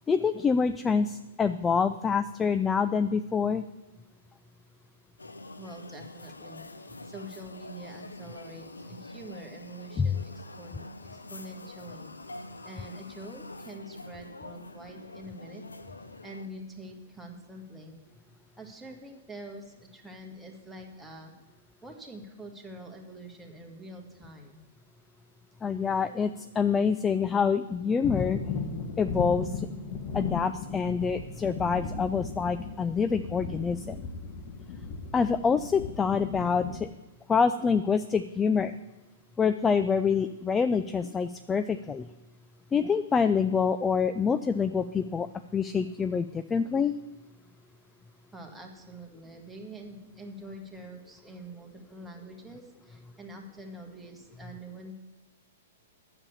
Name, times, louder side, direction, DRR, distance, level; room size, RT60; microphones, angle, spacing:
voice 1, 0.1-3.7 10.0-10.1 25.6-28.4 29.0-29.7 30.1-34.0 35.1-36.9 37.3-38.7 39.4-42.1 42.7-45.3 45.5-46.9, left 6 dB, 15° left, 11 dB, 0.3 m, -26 dB
sound 1, 5.2-16.5, left 2 dB, 80° left, 0.7 m, -45 dB
voice 2, 5.5-6.6 7.0-10.9 11.1-12.1 12.6-15.6 16.2-18.0 18.6-21.3 21.8-24.6 48.3-54.9, right 1 dB, 5° right, 0 dB, 1.7 m, -45 dB
sound 2, 28.0-36.9, left 5 dB, 35° left, 1.2 m, -36 dB
10.5 x 7.0 x 7.1 m, 1.1 s
figure-of-eight pair, 110°, 0 cm